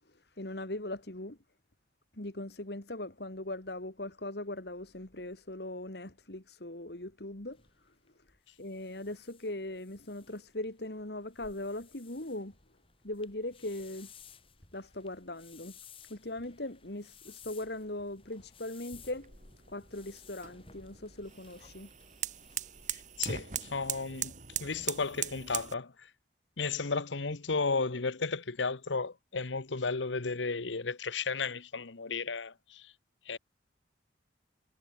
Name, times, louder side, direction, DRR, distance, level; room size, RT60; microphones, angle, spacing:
voice 1, 0.1-1.4 2.1-7.6 8.6-12.5 13.0-14.1 14.7-15.7 16.1-19.3 19.7-21.9, left 1 dB, 60° left, 2.2 m, -40 dB
sound 1, 7.5-23.7, left 6 dB, 30° left, 6.4 m, -57 dB
sound 2, 19.0-25.7, right 10 dB, 40° right, 2.0 m, -40 dB
voice 2, 22.9-24.3 24.6-25.9 26.6-32.9 33.3-33.4, left 4 dB, 80° left, 1.1 m, -34 dB
head